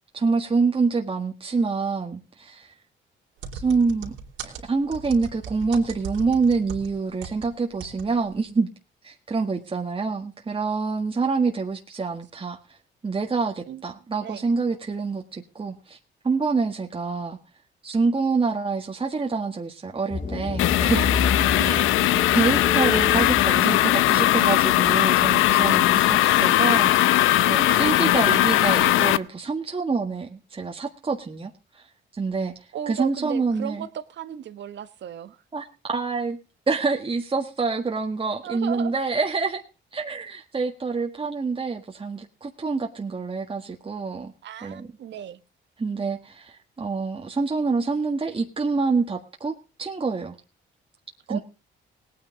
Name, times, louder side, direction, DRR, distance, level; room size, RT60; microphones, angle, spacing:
voice 1, 0.1-2.7 3.5-4.1 4.4-8.7 9.0-12.6 13.0-16.0 16.2-17.4 17.8-21.1 21.4-21.6 22.3-31.8 32.1-32.5 32.9-33.9 35.5-36.4 36.7-39.6 39.9-44.3 44.6-44.9 45.8-49.5 49.8-50.4 51.3-51.4, right 4 dB, 25° right, 1.7 m, -26 dB
sound 1, 3.4-7.5 7.8-8.1 8.3-8.4, right 6 dB, 90° right, 3.5 m, -37 dB
dark ambient, 20.1-26.4, left 5 dB, 35° left, 1.4 m, -30 dB
sound 2, 20.6-29.2, left 15 dB, 90° left, 0.6 m, -19 dB
voice 2, 20.8-21.9 25.7-25.8 27.6-28.4 32.7-35.4 38.4-39.0 44.4-45.4 51.3-51.4, right 10 dB, 65° right, 1.2 m, -36 dB
19.0 x 9.4 x 3.9 m
cardioid pair, 90°, 20 cm